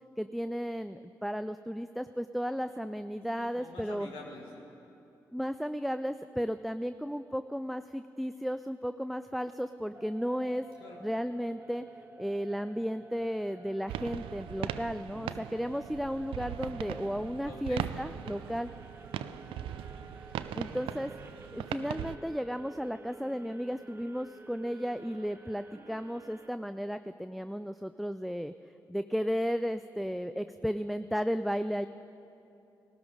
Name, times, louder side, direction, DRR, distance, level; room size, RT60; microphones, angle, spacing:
voice 1, 0.2-4.1 5.3-10.6 11.0-11.8 12.2-18.7 20.5-21.1 21.5-28.5 28.9-31.9, equal, ahead, 10 dB, 0.4 m, -34 dB
voice 2, 3.4-4.7 10.8-11.0 15.1-15.4 17.4-17.9 18.1-18.2 19.1-19.5, left 3 dB, 80° left, -1 dB, 1.5 m, -47 dB
sound 1, 9.9-26.5, right 3 dB, 25° right, 0.8 m, -52 dB
sound 2, 13.9-22.2, right 11 dB, 80° right, 0.4 m, -39 dB
17.5 x 12.5 x 4.9 m, 2.9 s
hypercardioid pair, 40°, 9 cm